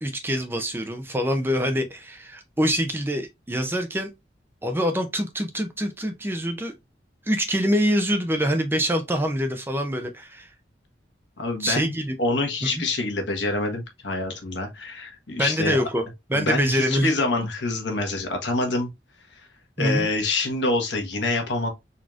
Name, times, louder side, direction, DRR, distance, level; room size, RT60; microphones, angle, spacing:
voice 1, 0.0-4.1 4.6-6.7 7.3-10.5 11.6-12.1 12.6-12.8 15.4-17.1 19.8-20.1, equal, 10° right, 0.5 m, -25 dB
voice 2, 11.4-15.8 16.3-18.9 19.3-19.4 19.8-21.7, left 2 dB, 80° left, 1.2 m, -26 dB
4.0 x 3.0 x 2.4 m
head